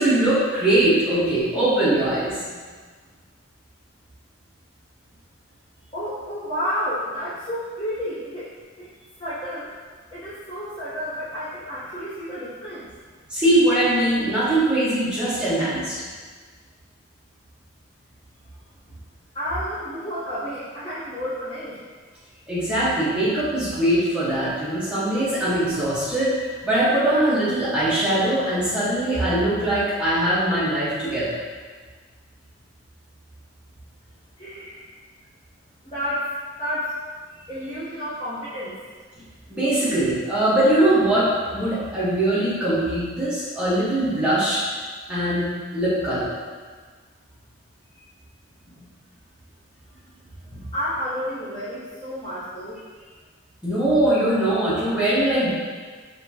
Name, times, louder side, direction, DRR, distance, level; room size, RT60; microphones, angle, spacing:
voice 1, 0.0-2.4 13.3-16.0 22.5-31.4 39.5-44.6 45.1-46.3 48.8-48.9 50.5-50.6 53.6-55.5, right 1 dB, 5° right, -11 dB, 1.2 m, -21 dB
voice 2, 5.9-8.5 8.8-8.9 9.2-9.7 10.1-12.9 19.3-21.8 34.4-34.9 35.8-36.9 37.3-38.8 50.7-53.1, equal, 25° left, -15 dB, 1.0 m, -31 dB
5.1 x 3.0 x 2.8 m, 1.5 s
head